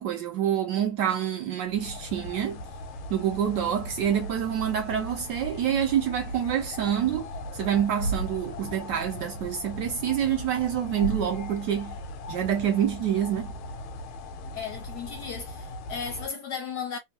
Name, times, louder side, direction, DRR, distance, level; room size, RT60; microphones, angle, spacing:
voice 1, 0.0-2.6 3.1-12.0 12.3-13.5, right 9 dB, 75° right, 1.0 m, -27 dB
sound 1, 1.6-16.3, equal, 85° left, 1.5 m, -38 dB
voice 2, 14.5-17.0, left 6 dB, 65° left, 1.0 m, -35 dB
3.5 x 2.2 x 2.8 m
omnidirectional pair, 2.3 m